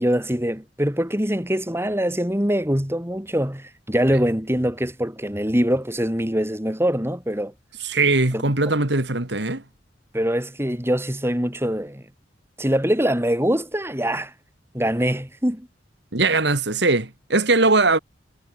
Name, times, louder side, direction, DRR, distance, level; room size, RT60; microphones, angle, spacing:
voice 1, 0.0-7.5 8.3-8.4 10.1-12.0 12.6-14.3 14.7-15.7, equal, 15° right, 5.3 m, -23 dB
voice 2, 7.8-9.6 16.1-18.0, right 3 dB, 65° right, 2.5 m, -20 dB
head